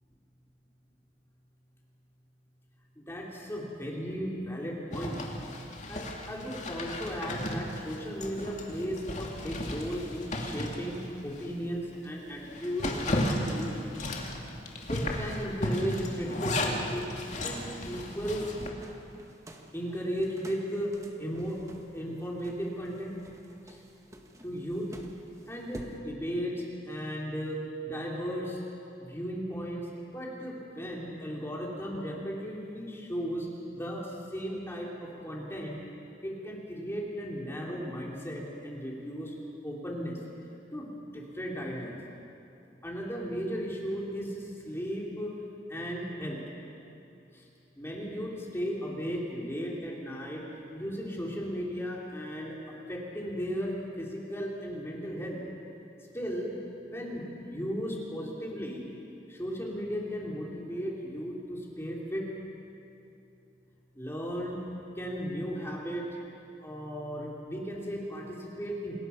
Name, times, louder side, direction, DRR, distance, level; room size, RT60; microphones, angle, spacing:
voice 1, 3.0-5.2 5.9-11.0 11.2-13.8 14.9-17.1 17.4-18.5 19.7-21.6 21.9-23.2 23.7-23.8 24.4-24.9 25.5-28.6 29.0-29.8 30.1-33.5 33.7-35.8 36.2-39.3 39.6-40.2 40.7-40.9 41.1-42.0 42.8-45.3 45.7-46.4 47.3-47.4 47.8-50.5 50.7-55.4 56.1-56.5 56.8-58.8 59.3-62.3 64.0-64.6 65.0-66.1 66.6-69.0, equal, 15° left, -3 dB, 3.7 m, -35 dB
Zipper (clothing), 4.9-11.5 11.9-12.0 12.4-18.7, left 1 dB, 40° left, 2.4 m, -34 dB
sound 1, 18.8-26.0, equal, 20° right, 1.7 m, -50 dB
27.5 x 20.0 x 6.0 m, 2.8 s
head